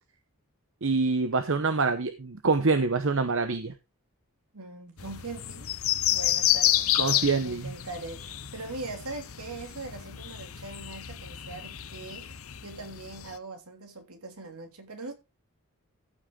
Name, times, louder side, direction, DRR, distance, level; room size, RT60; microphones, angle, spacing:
voice 1, 0.8-3.7 6.9-7.7, right 4 dB, 60° right, 0.9 m, -26 dB
voice 2, 4.5-5.7 6.1-15.1, right 3 dB, 75° right, 2.8 m, -41 dB
sound 1, 5.0-13.4, left 12 dB, 70° left, 0.8 m, -30 dB
14.5 x 6.3 x 3.8 m
head